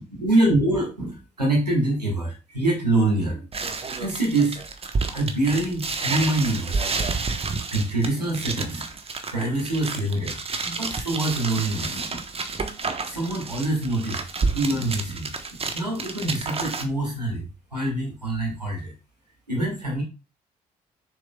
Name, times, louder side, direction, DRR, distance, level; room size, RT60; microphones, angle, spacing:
voice 1, 0.2-3.5 4.0-6.9 7.5-8.9 9.3-10.4 10.6-12.2 13.0-15.3 15.7-18.9 19.5-20.0, right 2 dB, 90° right, -1 dB, 1.9 m, -25 dB
sound 1, 3.5-16.8, right 4 dB, 30° right, 1.1 m, -30 dB
6.9 x 6.4 x 2.3 m, 0.31 s
figure-of-eight pair, 45°, 20 cm